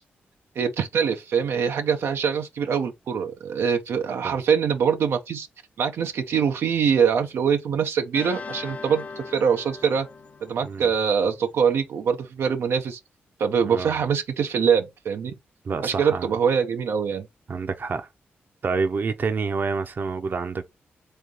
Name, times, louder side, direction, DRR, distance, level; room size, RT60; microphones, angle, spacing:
voice 1, 0.6-5.5 5.8-10.1 10.4-13.0 13.4-15.3 15.8-17.3, right 7 dB, 80° right, 0.8 m, -23 dB
sound 1, 8.1-11.5, left 4 dB, 35° left, 0.8 m, -40 dB
voice 2, 13.7-14.0 15.6-16.3 17.5-18.1 18.6-20.6, right 4 dB, 50° right, 0.9 m, -28 dB
3.6 x 3.3 x 3.9 m
cardioid pair, 85°, 4 cm